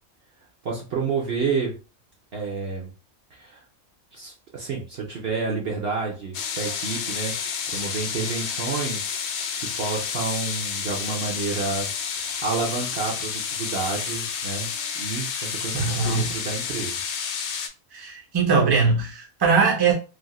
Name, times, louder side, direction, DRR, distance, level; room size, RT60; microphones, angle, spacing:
voice 1, 0.6-1.8 2.3-2.9 3.3-3.6 4.1-9.2 9.6-17.0, right 4 dB, 55° right, 0.8 m, -30 dB
sound 1, 6.3-17.7, left 6 dB, 85° left, 1.0 m, -30 dB
voice 2, 15.7-16.3 17.9-19.9, right 5 dB, 25° right, 0.6 m, -21 dB
3.3 x 2.4 x 2.3 m
omnidirectional pair, 1.4 m